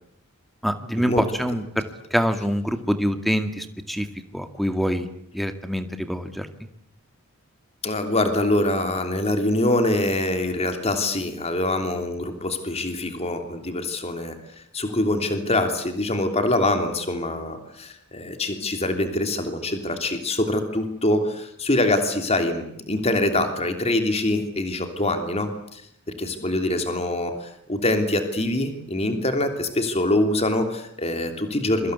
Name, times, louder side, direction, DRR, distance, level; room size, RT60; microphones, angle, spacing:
voice 1, 0.6-4.1 4.3-5.1 5.3-6.5, equal, ahead, 9 dB, 2.1 m, -25 dB
voice 2, 7.8-25.8 26.1-31.9, left 1 dB, 30° left, 7 dB, 3.1 m, -24 dB
27.5 x 24.0 x 8.2 m, 0.71 s
head